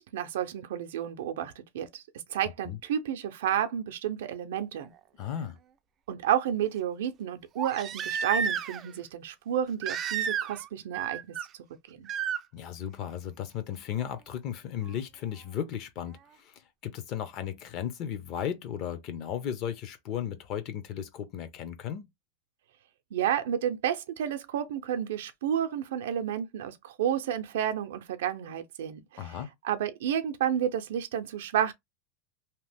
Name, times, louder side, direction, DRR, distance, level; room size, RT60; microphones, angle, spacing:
voice 1, 0.0-2.0 2.3-4.9 6.1-11.4 11.9-12.1 23.1-29.3 29.6-31.7, right 10 dB, 90° right, 0.5 m, -31 dB
Crying sobbing, 4.8-4.9 7.6-8.9 9.8-10.7 10.9-11.5 12.1-12.4 14.0-14.1, right 7 dB, 30° right, 0.3 m, -31 dB
voice 2, 5.2-5.6 12.5-22.1 29.2-29.5, left 9 dB, 40° left, 0.6 m, -35 dB
2.8 x 2.0 x 3.3 m
supercardioid pair, 155°, 0 cm